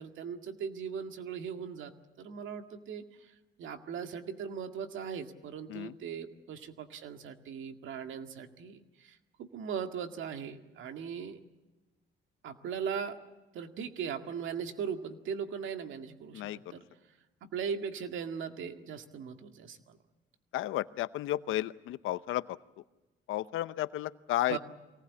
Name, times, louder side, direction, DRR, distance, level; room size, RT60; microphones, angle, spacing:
voice 1, 0.0-3.3 3.6-11.4 12.4-13.2 13.5-16.8 17.4-20.0 24.5-24.6, right 7 dB, 80° right, 6 dB, 2.0 m, -39 dB
voice 2, 20.5-22.6 23.3-24.6, left 14 dB, 85° left, 15 dB, 0.8 m, -33 dB
24.0 x 18.5 x 8.4 m, 1.1 s
cardioid pair, 90°, 20 cm